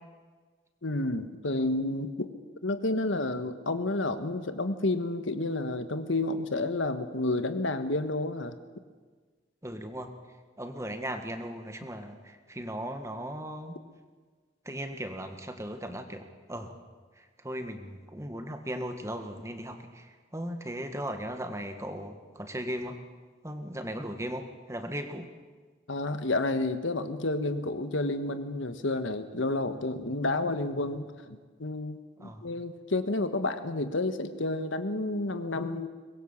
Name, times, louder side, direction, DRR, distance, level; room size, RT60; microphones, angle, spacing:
voice 1, 0.8-2.3 2.6-8.6 25.9-35.9, left 2 dB, 85° left, 9 dB, 1.5 m, -30 dB
voice 2, 9.6-10.2 10.6-13.8 14.6-16.8 17.2-23.0 23.4-25.3 32.2-32.5, equal, 15° right, 6 dB, 1.7 m, -37 dB
23.5 x 21.0 x 7.3 m, 1.5 s
head